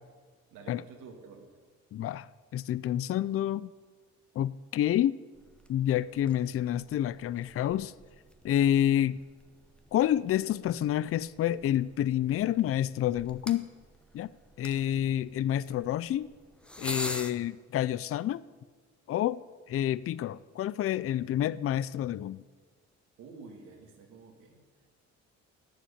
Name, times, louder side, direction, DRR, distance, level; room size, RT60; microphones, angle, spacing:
voice 1, 0.5-1.4 23.2-24.6, right 4 dB, 90° right, 2.4 m, -49 dB
voice 2, 1.9-2.3 2.5-3.7 4.4-5.2 5.7-7.9 8.4-9.2 9.9-13.7 14.1-14.3 14.6-16.3 16.8-18.4 19.1-19.4 19.7-22.4, left 11 dB, 50° left, 0.4 m, -28 dB
sound 1, 5.3-17.3, left 1 dB, 5° left, 0.9 m, -46 dB
11.5 x 9.2 x 8.6 m
cardioid pair, 90°, 30 cm